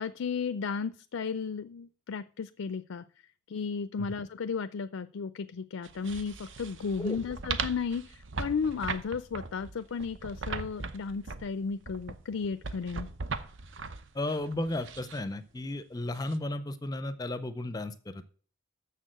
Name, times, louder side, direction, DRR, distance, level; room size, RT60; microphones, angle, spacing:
voice 1, 0.0-3.0 3.5-8.1 8.4-13.1, left 5 dB, 75° left, 13 dB, 0.4 m, -34 dB
sound 1, 5.8-15.2 16.2-16.4, right 4 dB, 65° right, 0.7 m, -39 dB
voice 2, 14.1-18.2, left 1 dB, 20° left, 12 dB, 0.5 m, -34 dB
6.9 x 6.5 x 7.5 m, 0.43 s
head